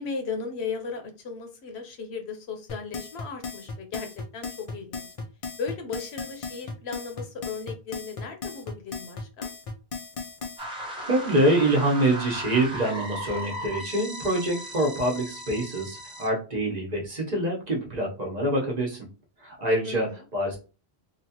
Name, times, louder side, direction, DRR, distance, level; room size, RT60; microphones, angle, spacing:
voice 1, 0.0-5.1 5.6-9.5 19.8-20.2, left 5 dB, 75° left, 5 dB, 0.9 m, -36 dB
sound 1, 2.7-10.6, left 4 dB, 50° left, 0.4 m, -36 dB
sound 2, 10.6-16.3, equal, 5° right, 0.8 m, -37 dB
voice 2, 11.1-19.0 19.4-20.6, right 1 dB, 40° right, -2 dB, 0.9 m, -25 dB
2.9 x 2.3 x 2.8 m, 0.33 s
omnidirectional pair, 1.1 m